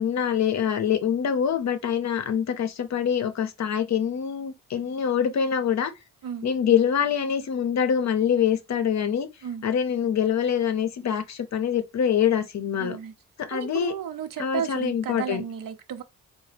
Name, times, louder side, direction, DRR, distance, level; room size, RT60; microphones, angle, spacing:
voice 1, 0.0-5.9 6.4-9.3 9.6-13.0 13.4-13.9 14.4-15.4, left 8 dB, 55° left, 0.6 m, -25 dB
voice 2, 12.8-13.1 13.5-16.0, right 8 dB, 70° right, 0.7 m, -33 dB
3.9 x 2.1 x 3.2 m
cardioid pair, 65°, 34 cm